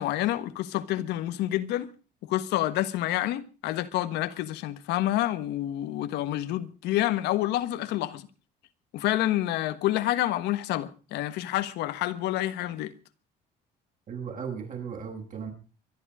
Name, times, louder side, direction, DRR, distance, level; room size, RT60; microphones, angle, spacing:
voice 1, 0.0-1.9 2.2-8.3 8.9-12.9, left 14 dB, 90° left, 1.4 m, -28 dB
voice 2, 14.1-15.5, right 6 dB, 50° right, 7.9 m, -36 dB
24.0 x 11.0 x 4.9 m
cardioid pair, 110°, 17 cm